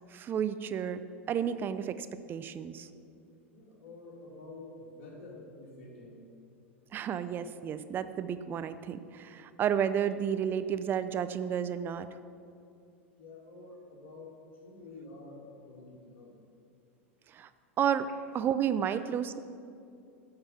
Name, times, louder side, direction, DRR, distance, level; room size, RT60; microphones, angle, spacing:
voice 1, 0.1-1.0 1.3-2.9 6.9-12.1 17.3-17.5 17.8-18.1 18.3-19.4, right 8 dB, 30° right, 12 dB, 0.5 m, -31 dB
voice 2, 3.5-6.2 13.2-14.3 14.6-16.3, left 2 dB, 55° left, -4 dB, 2.8 m, -48 dB
12.5 x 6.7 x 5.8 m, 2.5 s
figure-of-eight pair, 90°, 7 cm